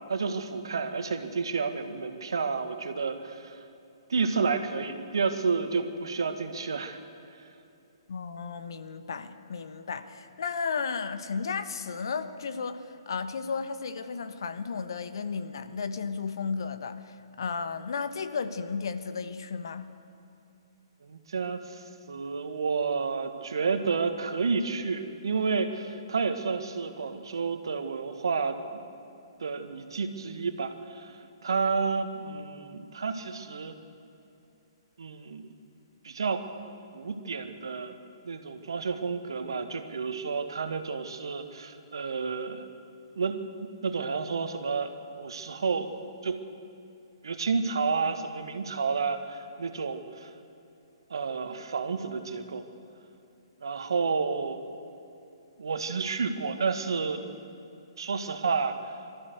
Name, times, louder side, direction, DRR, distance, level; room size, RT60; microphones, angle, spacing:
voice 1, 0.1-3.6 4.1-7.0 21.0-28.6 29.4-33.8 35.0-35.5 36.0-36.5 36.9-37.9 38.2-42.7 43.2-43.4 43.8-44.9 45.2-45.9 46.2-46.4 47.2-50.3 51.1-52.6 53.6-54.6 55.6-57.3 58.0-59.0, right 5 dB, 65° right, 8 dB, 1.7 m, -30 dB
voice 2, 8.1-19.9, left 5 dB, 60° left, 10 dB, 1.3 m, -34 dB
23.5 x 14.0 x 8.0 m, 2.7 s
figure-of-eight pair, 125°, 3 cm